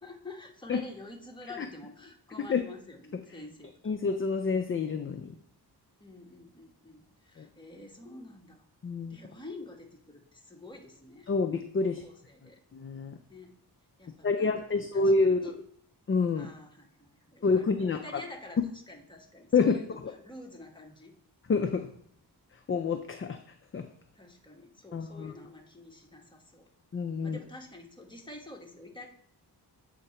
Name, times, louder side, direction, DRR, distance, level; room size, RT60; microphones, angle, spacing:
voice 1, 0.0-3.7 6.0-8.6 9.1-11.3 11.8-12.6 13.3-13.5 14.0-15.6 16.4-21.1 24.1-26.7 27.2-29.1, left 2 dB, 10° left, 0 dB, 1.2 m, -48 dB
voice 2, 3.8-5.3 7.4-7.5 8.8-9.2 11.3-12.0 12.7-13.2 14.2-15.6 16.1-16.5 17.4-18.0 19.5-19.8 20.0-20.1 21.5-21.9 22.7-23.4 23.7-23.9 24.9-25.3 26.9-27.4, left 4 dB, 30° left, 5 dB, 0.4 m, -27 dB
7.9 x 2.8 x 4.3 m, 0.67 s
wide cardioid pair, 90°, 41 cm